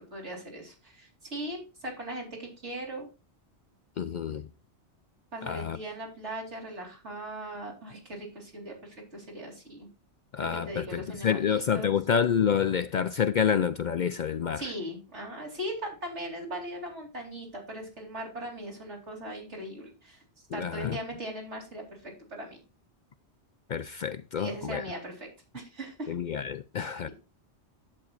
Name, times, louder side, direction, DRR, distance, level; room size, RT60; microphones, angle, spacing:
voice 1, 0.1-3.1 5.3-9.9 10.5-11.9 14.5-20.2 20.5-22.6 24.4-25.3 25.5-26.1, right 1 dB, 80° right, 4.1 m, -39 dB
voice 2, 4.0-4.4 5.5-5.8 10.3-14.6 20.5-21.0 23.7-24.8 26.1-27.1, left 7 dB, 55° left, 0.5 m, -28 dB
11.0 x 8.3 x 2.5 m
omnidirectional pair, 1.2 m